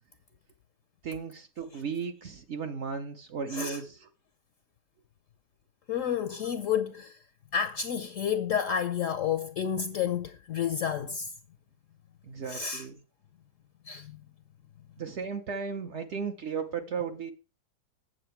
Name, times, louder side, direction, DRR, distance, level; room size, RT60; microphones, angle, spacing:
voice 1, 1.0-4.1 6.4-6.5 12.2-13.0 15.0-17.3, right 6 dB, 55° right, 0.8 m, -35 dB
voice 2, 5.9-7.1 7.5-11.3 12.5-12.8 13.9-14.2, left 8 dB, 65° left, 0.9 m, -30 dB
7.8 x 7.7 x 4.4 m
omnidirectional pair, 1.8 m